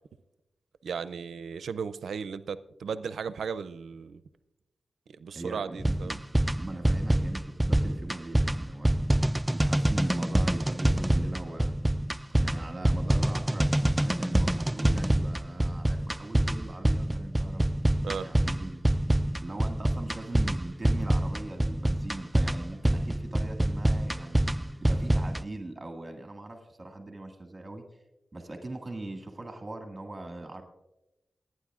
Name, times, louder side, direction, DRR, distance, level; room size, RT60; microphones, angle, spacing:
voice 1, 0.8-4.2 5.1-6.2 18.0-18.3, right 6 dB, 90° right, 14 dB, 0.4 m, -35 dB
voice 2, 5.3-6.2 6.6-8.9 9.5-11.7 12.3-17.6 18.2-18.8 19.4-24.4 24.8-27.8 28.3-30.6, right 2 dB, 30° right, 3 dB, 1.9 m, -40 dB
sound 1, 5.8-25.4, right 1 dB, 10° right, 0.3 m, -26 dB
28.5 x 9.6 x 2.4 m, 0.96 s
cardioid pair, 70°, 0 cm